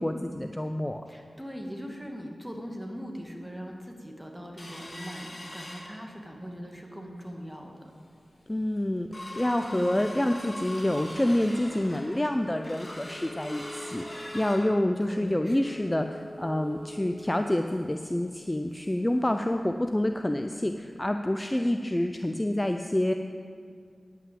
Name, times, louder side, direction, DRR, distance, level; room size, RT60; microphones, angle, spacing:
voice 1, 0.0-1.0 8.5-23.1, left 1 dB, 20° left, 6 dB, 0.5 m, -28 dB
voice 2, 1.1-7.9 9.7-10.0 15.0-15.8 21.5-21.9, equal, 5° right, 1 dB, 1.8 m, -40 dB
sound 1, 4.6-6.4 6.8-6.9 7.3-7.6 8.1-8.2 8.6-19.1 19.4-19.5 19.9-20.1 20.6-20.7, left 1 dB, 45° left, 2.9 m, -43 dB
9.9 x 5.9 x 8.4 m, 2.1 s
cardioid pair, 40°, 0 cm